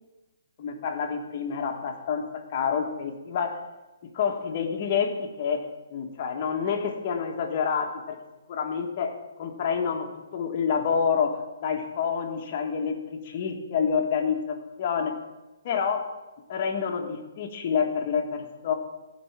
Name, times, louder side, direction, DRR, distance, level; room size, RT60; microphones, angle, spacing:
voice 1, 0.6-3.6 4.1-5.6 5.9-8.2 8.5-10.1 10.3-15.1 15.6-16.1 16.5-18.7, left 6 dB, 30° left, 2 dB, 1.5 m, -28 dB
15.0 x 5.4 x 7.4 m, 1.1 s
hypercardioid pair, 170°, 0 cm